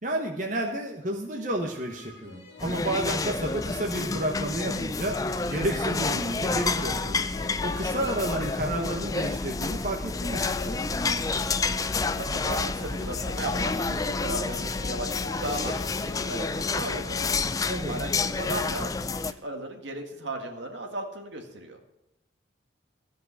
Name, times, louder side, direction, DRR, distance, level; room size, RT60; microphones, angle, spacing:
voice 1, 0.0-5.2 5.5-7.2 7.6-10.8 17.7-17.9, right 1 dB, 40° right, 1 dB, 1.2 m, -31 dB
sound 1, 1.7-9.5 10.1-18.1, left 3 dB, 65° left, 2.0 m, -42 dB
sound 2, 2.6-19.3, left 4 dB, 20° left, 0.3 m, -29 dB
voice 2, 12.1-17.4 17.9-21.8, right 1 dB, 70° right, 3 dB, 1.8 m, -36 dB
14.0 x 5.3 x 8.2 m, 0.89 s
head